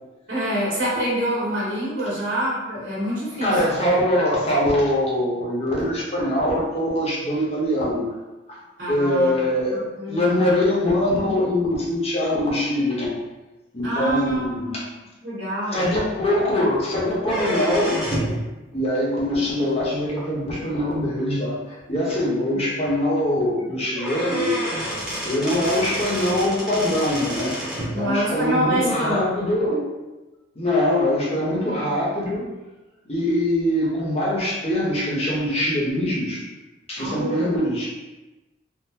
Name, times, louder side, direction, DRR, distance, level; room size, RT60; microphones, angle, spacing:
voice 1, 0.3-3.9 8.8-9.4 9.7-10.4 13.8-14.8 15.2-15.8 27.9-29.5 37.0-37.5, right 1 dB, 85° right, -8 dB, 1.3 m, -26 dB
voice 2, 3.4-8.1 8.9-13.2 13.7-14.7 15.7-18.0 18.7-21.6 21.9-24.5 25.2-27.6 27.9-29.8 30.5-32.5 33.1-36.4 36.9-37.9, left 1 dB, 35° left, -5 dB, 0.8 m, -23 dB
sound 1, 17.2-18.4 20.2-20.3 21.2-21.3 21.7-21.8 22.1-22.2 23.6-23.7 23.9-27.9, equal, 5° right, 0.8 m, -29 dB
3.6 x 2.0 x 2.8 m, 1.1 s
head